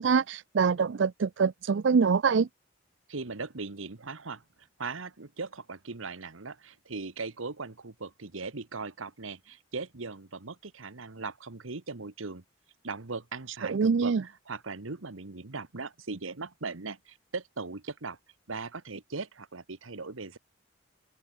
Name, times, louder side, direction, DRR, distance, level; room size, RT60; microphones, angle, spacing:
voice 1, 0.0-2.5 13.6-14.2, right 5 dB, 65° right, 0.4 m, -24 dB
voice 2, 3.1-12.4 12.8-18.2 18.5-20.4, right 4 dB, 85° right, 1.4 m, -39 dB
open air
head